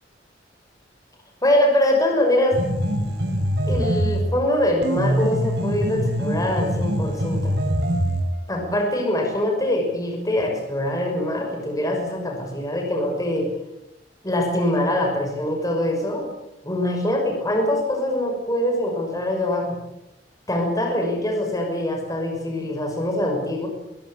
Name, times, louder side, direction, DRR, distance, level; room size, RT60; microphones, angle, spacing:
voice 1, 1.4-2.6 3.7-7.5 8.5-13.5 14.2-16.3 16.6-19.8 20.5-23.7, left 1 dB, 20° left, 1 dB, 6.1 m, -23 dB
sound 1, 2.5-4.3 4.8-8.3, equal, 65° right, 5.7 m, -23 dB
22.5 x 21.5 x 8.4 m, 0.88 s
head